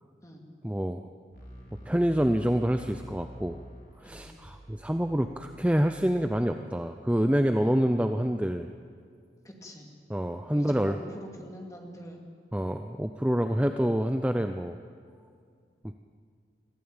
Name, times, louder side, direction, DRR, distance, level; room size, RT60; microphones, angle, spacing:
voice 1, 0.6-1.0 1.8-3.6 4.0-8.7 10.1-11.0 12.5-14.8, equal, 5° right, 7 dB, 0.5 m, -27 dB
sound 1, 1.3-6.4, equal, 60° left, 5.0 m, -48 dB
voice 2, 9.4-9.9 10.5-12.2, equal, 20° left, 1 dB, 2.5 m, -45 dB
21.5 x 15.0 x 8.9 m, 2.2 s
head